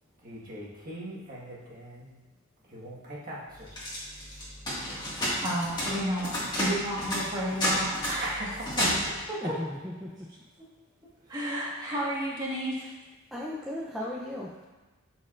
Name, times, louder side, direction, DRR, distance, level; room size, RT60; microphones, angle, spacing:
voice 1, 0.2-2.2 2.6-3.8 4.3-4.4 8.1-9.3 11.2-11.4, right 1 dB, 40° right, -6 dB, 1.6 m, -40 dB
sound 1, 3.7-9.2, equal, 20° left, 1.8 m, -31 dB
voice 2, 5.4-8.4 9.3-9.4 11.3-12.9, equal, 20° right, -6 dB, 1.5 m, -32 dB
voice 3, 9.4-10.3 13.3-14.7, left 1 dB, ahead, -6 dB, 0.5 m, -36 dB
12.0 x 4.4 x 2.5 m, 1.2 s
head